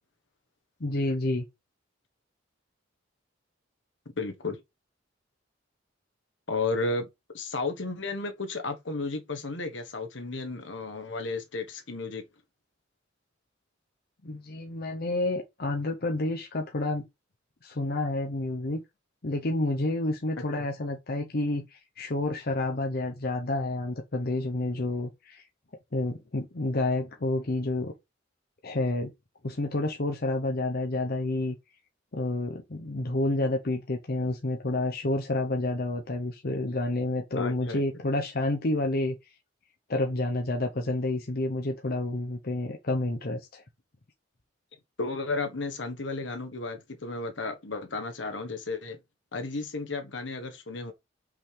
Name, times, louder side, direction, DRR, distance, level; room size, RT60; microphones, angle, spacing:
voice 1, 0.8-1.4 14.2-17.1 17.6-18.8 19.2-25.4 25.9-27.9 28.6-29.1 29.4-31.5 32.1-39.1 39.9-43.6, left 2 dB, 55° left, 0.8 m, -29 dB
voice 2, 4.2-4.6 6.5-7.1 7.3-12.2 20.4-20.6 37.3-37.8 45.0-49.0 49.3-50.9, left 3 dB, 70° left, 1.3 m, -33 dB
5.6 x 5.5 x 3.3 m
head